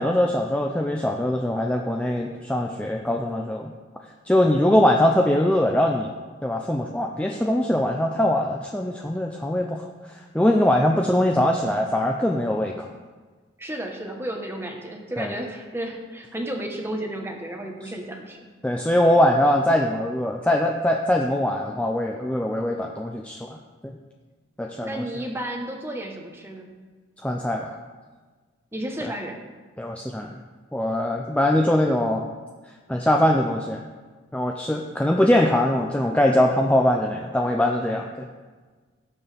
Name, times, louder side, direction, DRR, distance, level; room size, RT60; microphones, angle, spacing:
voice 1, 0.0-3.7 4.3-6.1 6.4-9.8 10.3-12.9 15.2-15.3 18.6-23.6 23.8-23.9 24.6-25.0 27.2-27.8 29.0-29.1 29.8-30.3 30.7-32.3 32.9-33.8 34.3-38.3, left 1 dB, 5° left, 1 dB, 0.4 m, -22 dB
voice 2, 13.6-18.4 24.8-26.7 28.7-29.4, right 1 dB, 10° right, 2 dB, 1.1 m, -32 dB
17.5 x 7.1 x 3.4 m, 1.4 s
head